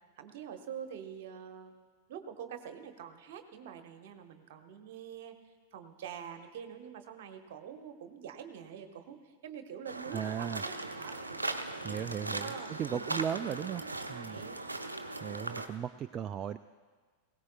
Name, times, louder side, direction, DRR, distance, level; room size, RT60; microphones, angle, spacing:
voice 1, 0.2-1.7 2.1-5.4 5.7-13.8 14.1-14.6, right 8 dB, 55° right, 6 dB, 1.2 m, -46 dB
sound 1, 9.9-15.7, right 2 dB, 80° right, 0.7 m, -39 dB
voice 2, 10.1-10.6 11.8-13.8 14.1-14.4 15.2-16.6, right 9 dB, 30° right, 11 dB, 0.3 m, -36 dB
20.5 x 17.5 x 2.4 m, 1.5 s
figure-of-eight pair, 90°, 0 cm